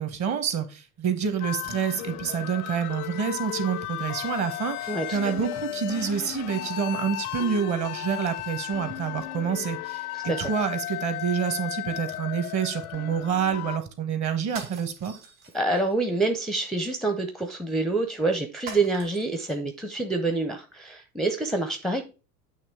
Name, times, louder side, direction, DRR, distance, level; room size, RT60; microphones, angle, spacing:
voice 1, 0.0-15.1, right 7 dB, 40° right, 1.3 m, -28 dB
sound 1, 1.4-13.8, left 15 dB, 75° left, 0.5 m, -35 dB
voice 2, 4.9-5.2 10.1-10.4 15.5-22.0, right 2 dB, ahead, 0.5 m, -27 dB
sound 2, 14.5-15.9 18.7-19.6, right 6 dB, 65° right, 2.3 m, -43 dB
8.6 x 3.1 x 4.5 m
figure-of-eight pair, 70°, 45 cm